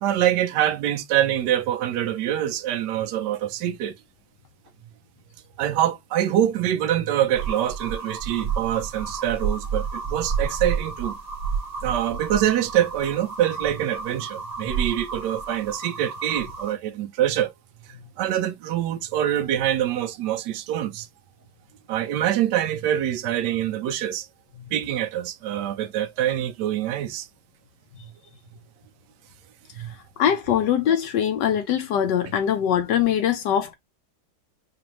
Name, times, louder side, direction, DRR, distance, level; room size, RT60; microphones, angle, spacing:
voice 1, 0.0-3.9 5.6-11.1 11.8-17.5 18.2-21.1 21.9-24.3 24.7-27.3 29.8-29.9, right 11 dB, 75° right, 1.1 m, -25 dB
sound 1, 7.3-16.7, right 5 dB, 30° right, 0.9 m, -31 dB
voice 2, 30.2-33.7, left 9 dB, 75° left, 1.2 m, -22 dB
5.0 x 2.5 x 2.9 m
omnidirectional pair, 2.0 m